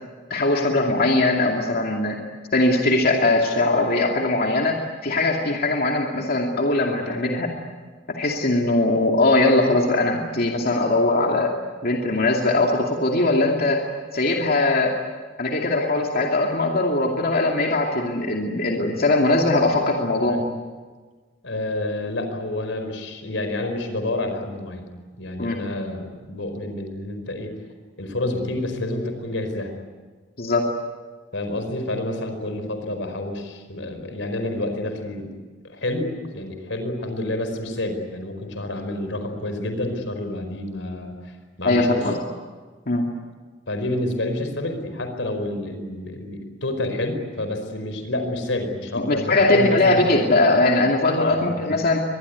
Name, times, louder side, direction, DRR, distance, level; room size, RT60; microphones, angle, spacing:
voice 1, 0.3-2.2 2.5-7.5 8.1-11.5 11.8-13.8 14.1-15.0 15.4-20.4 25.4-25.6 30.4-30.7 41.6-42.2 42.9-43.1 49.1-52.0, left 2 dB, 55° left, 1 dB, 2.5 m, -20 dB
voice 2, 21.4-24.9 25.2-27.5 28.0-29.7 31.3-35.3 35.6-41.2 41.6-42.1 43.7-50.2 51.1-51.8, left 1 dB, 85° left, 7 dB, 4.6 m, -29 dB
24.5 x 21.0 x 9.5 m, 1.4 s
head